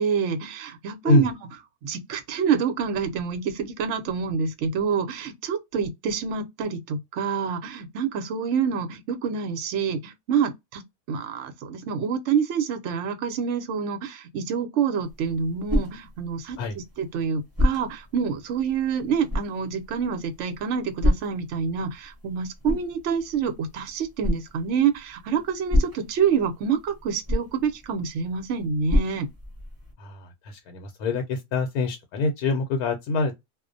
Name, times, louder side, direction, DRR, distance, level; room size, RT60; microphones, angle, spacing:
voice 1, 0.0-1.4 1.8-10.8 11.1-29.3, right 6 dB, 65° right, 0.8 m, -27 dB
sound 1, 15.0-29.9, left 1 dB, 20° right, 0.7 m, -30 dB
voice 2, 30.0-33.4, left 2 dB, 80° left, 1.1 m, -25 dB
2.4 x 2.0 x 2.5 m
omnidirectional pair, 1.6 m